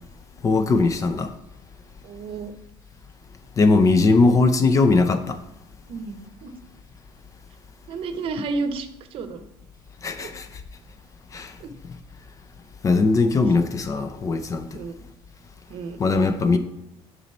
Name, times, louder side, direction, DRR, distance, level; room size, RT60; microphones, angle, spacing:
voice 1, 0.4-1.3 3.6-5.4 10.0-10.5 11.3-11.5 12.8-14.7 16.0-16.6, left 3 dB, 30° left, 0.5 m, -19 dB
voice 2, 2.0-2.5 5.9-6.6 7.9-9.5 10.2-10.3 11.6-11.7 14.7-15.0 15.7-16.0 16.5-16.6, right 4 dB, 60° right, 0.8 m, -32 dB
7.3 x 4.1 x 4.3 m
cardioid pair, 120°, 11 cm